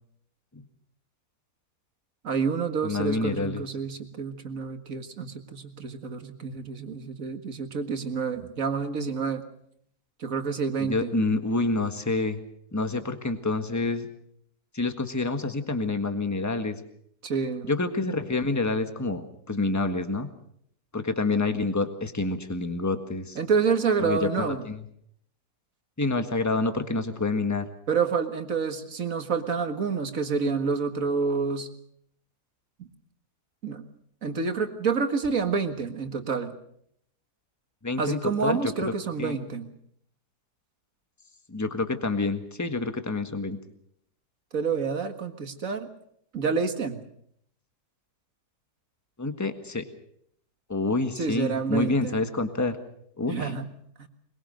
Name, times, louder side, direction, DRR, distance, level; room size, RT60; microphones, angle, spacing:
voice 1, 2.2-9.5 10.2-11.1 17.2-17.7 23.4-24.6 27.9-31.7 33.6-33.8 34.2-36.5 38.0-39.7 44.5-45.9 46.3-47.0 51.2-52.2 53.3-53.7 54.0-54.1, right 5 dB, 55° right, 7 dB, 2.1 m, -28 dB
voice 2, 2.8-3.6 10.8-12.4 12.7-14.1 14.7-16.8 17.6-20.3 20.9-23.4 24.0-24.8 26.0-27.7 37.8-38.9 39.2-39.4 41.5-43.6 49.2-49.8 50.7-52.8 53.2-53.5, left 3 dB, 10° left, 7 dB, 1.5 m, -27 dB
22.5 x 22.0 x 6.5 m, 0.69 s
omnidirectional pair, 1.7 m